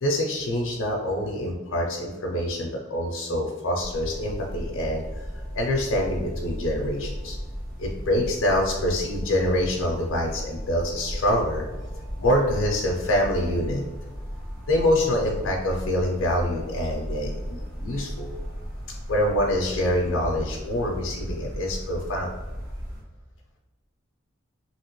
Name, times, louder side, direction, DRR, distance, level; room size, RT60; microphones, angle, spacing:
voice 1, 0.0-5.3 5.5-7.4 7.8-11.6 12.2-13.8 14.7-18.4 19.1-22.3, left 1 dB, 75° left, -1 dB, 0.5 m, -25 dB
sound 1, 3.8-23.0, equal, 70° right, 1.3 m, -35 dB
2.9 x 2.9 x 3.0 m, 1.3 s
head